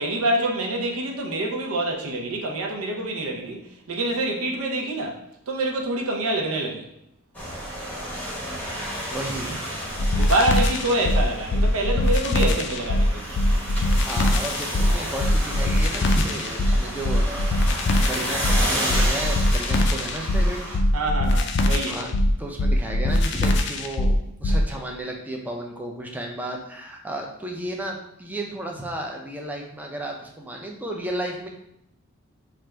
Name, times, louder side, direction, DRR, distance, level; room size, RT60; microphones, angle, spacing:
voice 1, 0.0-3.6 3.9-5.2 5.5-6.8 10.1-13.4 20.9-22.0, right 1 dB, 80° right, 0 dB, 0.7 m, -26 dB
sound 1, 7.3-20.8, equal, 10° left, 0.8 m, -31 dB
voice 2, 9.1-9.9 13.8-17.6 18.1-20.6 21.9-22.1 22.4-31.5, right 1 dB, 10° right, 1 dB, 0.4 m, -33 dB
sound 2, 10.0-24.7, left 1 dB, 55° left, 0.4 m, -21 dB
3.3 x 2.5 x 4.3 m, 0.78 s
head